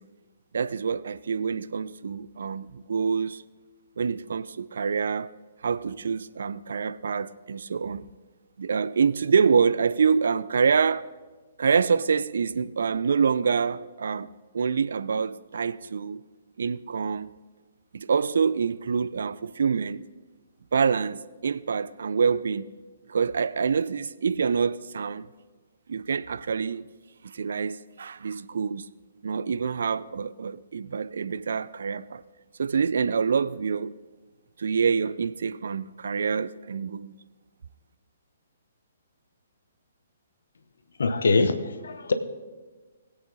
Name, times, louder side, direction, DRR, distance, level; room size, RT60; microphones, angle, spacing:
voice 1, 0.5-3.4 4.0-5.3 5.6-8.1 8.6-11.1 11.6-16.2 16.6-17.3 17.9-20.0 20.7-22.7 23.1-25.3 25.9-26.9 27.2-28.9 29.2-32.2 32.6-33.9 34.6-37.1, right 6 dB, 60° right, 0.3 m, -26 dB
voice 2, 41.0-42.1, left 3 dB, 65° left, 0.8 m, -23 dB
20.5 x 8.1 x 2.7 m
figure-of-eight pair, 125°, 0 cm